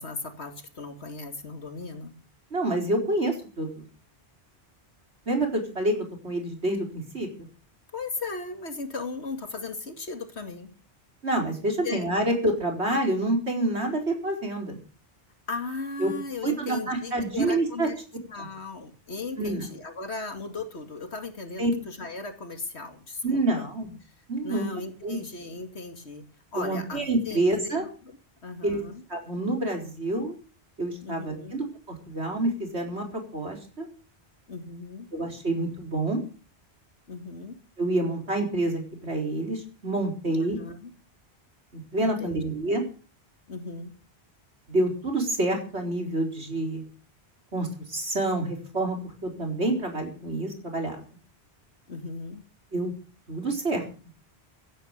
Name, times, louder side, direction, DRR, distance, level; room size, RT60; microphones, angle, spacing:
voice 1, 0.0-2.1 7.9-10.7 11.8-12.1 15.5-18.0 18.3-23.4 24.0-24.1 24.4-26.2 26.5-28.2 28.4-29.0 31.0-31.6 34.5-35.1 37.1-37.6 40.3-40.9 42.0-42.4 43.5-43.9 51.9-52.4, left 3 dB, 80° left, 7 dB, 2.6 m, -37 dB
voice 2, 2.5-3.9 5.3-5.9 6.2-7.3 11.2-14.8 16.0-16.1 16.4-17.9 19.4-19.6 21.6-21.7 23.2-24.0 24.3-24.7 25.0-25.2 26.6-27.8 28.6-28.8 29.1-30.4 30.8-33.9 35.1-36.2 37.8-40.6 41.7-42.8 44.7-46.8 47.5-51.0 52.7-52.9 53.3-53.8, right 2 dB, 80° right, 2 dB, 4.7 m, -27 dB
16.5 x 10.5 x 6.7 m, 0.38 s
omnidirectional pair, 1.1 m